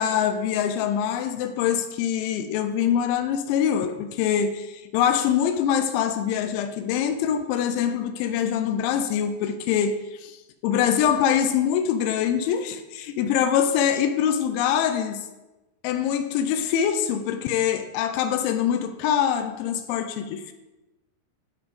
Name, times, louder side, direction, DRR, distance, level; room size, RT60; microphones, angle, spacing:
voice 1, 0.0-10.4 10.6-15.3 15.8-20.5, left 9 dB, 85° left, 9 dB, 2.8 m, -24 dB
10.5 x 5.6 x 4.0 m, 1.0 s
omnidirectional pair, 5.4 m